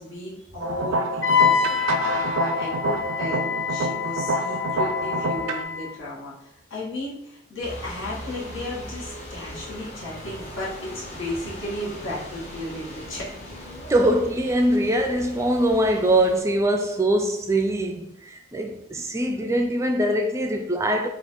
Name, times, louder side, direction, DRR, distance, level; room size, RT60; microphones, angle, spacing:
voice 1, 0.0-13.3, left 1 dB, 80° left, 1.6 m, -35 dB
sound 1, 0.6-5.6, right 2 dB, 80° right, 0.5 m, -27 dB
Wind instrument woodwind instrument, 1.2-5.9, left 7 dB, 60° left, 0.5 m, -26 dB
sound 2, 7.6-16.4, equal, 35° left, 0.8 m, -39 dB
voice 2, 13.9-21.1, right 1 dB, 15° right, 0.3 m, -22 dB
4.3 x 2.5 x 4.4 m
head